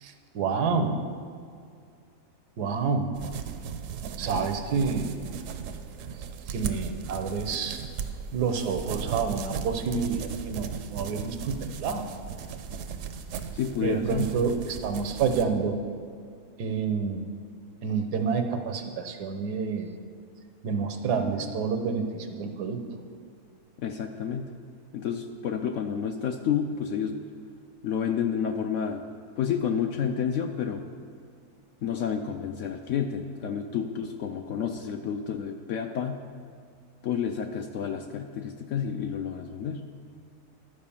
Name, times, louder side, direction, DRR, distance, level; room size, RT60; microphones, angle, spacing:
voice 1, 0.0-1.0 2.6-3.2 4.2-5.2 6.5-7.8 8.3-12.0 13.8-15.7 16.6-17.3 17.8-19.9 20.6-22.8, right 5 dB, 85° right, 6 dB, 1.4 m, -28 dB
sound 1, 3.1-15.4, right 7 dB, 65° right, 0.9 m, -37 dB
voice 2, 13.5-14.3 20.7-20.8 23.8-24.5 24.9-27.2 27.8-29.0 29.4-30.8 31.8-36.2 37.0-39.9, left 7 dB, 70° left, 6 dB, 0.7 m, -30 dB
12.0 x 5.0 x 7.0 m, 2.2 s
omnidirectional pair, 1.7 m